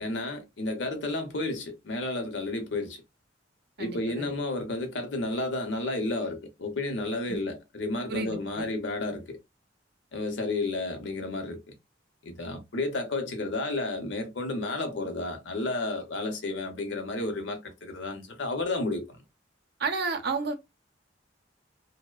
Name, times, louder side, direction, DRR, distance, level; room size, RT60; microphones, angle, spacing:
voice 1, 0.0-3.0 3.8-9.4 10.1-11.7 12.2-19.1, left 2 dB, 70° left, 0.7 m, -32 dB
voice 2, 3.8-4.3 7.3-7.4 8.1-8.7 19.8-20.5, right 4 dB, 60° right, 0.6 m, -31 dB
2.6 x 2.0 x 2.3 m
head